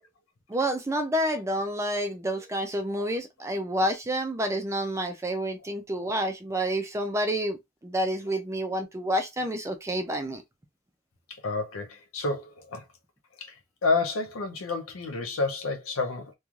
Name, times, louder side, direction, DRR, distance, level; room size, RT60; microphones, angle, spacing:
voice 1, 0.5-10.4, equal, 15° right, 0.3 m, -29 dB
voice 2, 11.3-12.8 13.4-13.6 13.8-16.3, left 3 dB, 85° left, 0.6 m, -30 dB
3.1 x 2.2 x 2.4 m
head